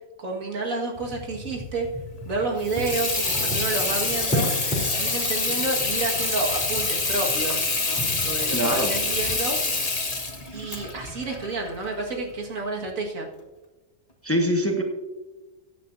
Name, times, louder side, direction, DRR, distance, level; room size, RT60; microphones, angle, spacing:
voice 1, 0.2-1.9 2.3-4.5 5.0-9.6 10.5-13.3, right 3 dB, 70° right, 1 dB, 2.1 m, -30 dB
sound 1, 0.9-9.3, left 1 dB, 5° right, 2.8 m, -35 dB
Water tap faucet / Sink (filling or washing), 2.6-12.2, left 3 dB, 30° left, 1.3 m, -26 dB
voice 2, 8.5-8.9 14.2-14.8, equal, 10° left, 3 dB, 1.0 m, -23 dB
15.0 x 10.0 x 2.6 m, 1.1 s
omnidirectional pair, 1.5 m